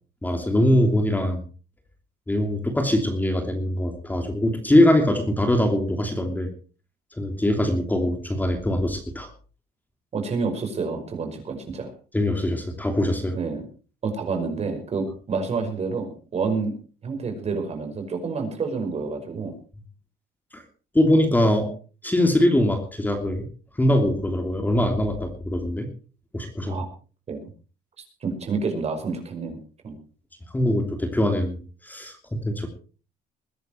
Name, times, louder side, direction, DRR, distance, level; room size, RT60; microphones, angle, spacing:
voice 1, 0.2-1.4 2.3-6.5 7.2-9.3 12.1-13.4 20.5-20.6 20.9-21.7 22.0-23.4 23.7-25.9 26.3-26.8 30.5-31.6 31.8-32.7, left 1 dB, 10° left, 5 dB, 3.0 m, -22 dB
voice 2, 10.1-11.9 13.3-13.6 14.0-16.7 17.0-19.5 26.7-26.9 27.3-27.5 28.2-29.6 29.8-30.0, right 4 dB, 40° right, 6 dB, 5.6 m, -28 dB
21.5 x 11.0 x 4.6 m, 0.38 s
cardioid pair, 110°, 17 cm